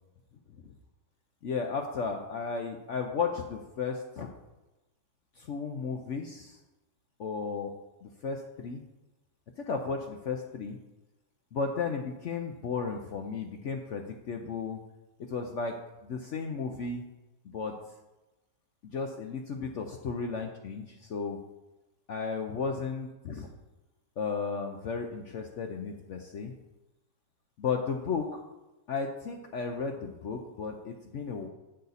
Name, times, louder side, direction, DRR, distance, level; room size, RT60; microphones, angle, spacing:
voice 1, 1.4-4.3 5.4-6.6 7.2-7.7 8.0-8.8 9.7-10.8 11.5-14.8 15.3-15.7 16.0-17.0 17.4-17.7 18.9-21.4 22.1-23.5 24.2-26.5 27.6-28.4 28.9-31.5, left 5 dB, 65° left, 3 dB, 0.7 m, -34 dB
8.1 x 6.6 x 4.0 m, 1.0 s
omnidirectional pair, 1.9 m